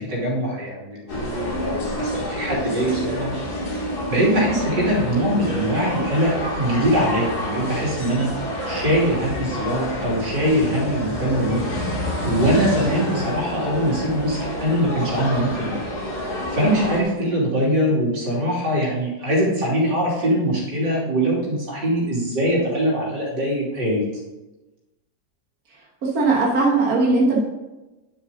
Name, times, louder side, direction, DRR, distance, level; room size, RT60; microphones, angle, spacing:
voice 1, 0.0-3.3 4.1-8.3 8.7-11.6 12.2-15.7 16.5-24.0, equal, 80° right, -5 dB, 3.7 m, -22 dB
sound 1, 1.1-17.0, equal, 65° left, 2.9 m, -28 dB
voice 2, 26.0-27.4, right 3 dB, 60° right, -4 dB, 1.9 m, -18 dB
10.5 x 7.1 x 3.9 m, 1.1 s
omnidirectional pair, 1.8 m